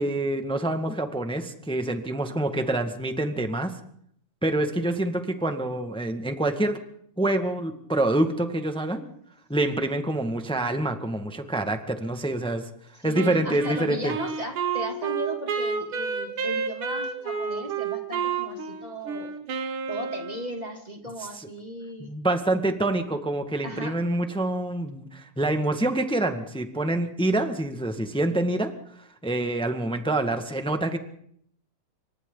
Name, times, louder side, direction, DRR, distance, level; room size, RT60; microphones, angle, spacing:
voice 1, 0.0-3.8 4.4-6.8 7.2-9.0 9.5-12.7 13.0-14.1 21.2-21.5 22.0-28.7 29.2-31.0, right 1 dB, 5° left, 6 dB, 0.8 m, -26 dB
voice 2, 13.0-19.4 19.9-22.1 23.6-24.0, equal, 15° right, 2 dB, 2.5 m, -36 dB
Wind instrument woodwind instrument, 13.1-20.6, right 6 dB, 90° right, 3.8 m, -30 dB
29.5 x 24.5 x 4.0 m, 0.67 s
omnidirectional pair, 3.6 m